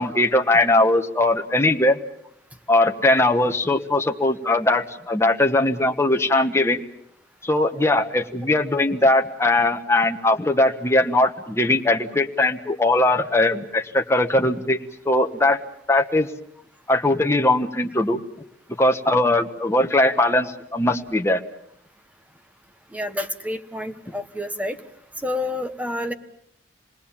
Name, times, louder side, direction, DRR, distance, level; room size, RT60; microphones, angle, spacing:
voice 1, 0.0-2.0 2.7-6.8 7.4-14.8 15.0-15.6 15.9-16.3 16.9-18.2 18.8-21.4, left 2 dB, 15° left, 3 dB, 1.2 m, -20 dB
voice 2, 22.9-24.8 25.2-26.1, left 1 dB, 10° right, 7 dB, 1.3 m, -29 dB
27.5 x 20.0 x 7.3 m, 0.72 s
head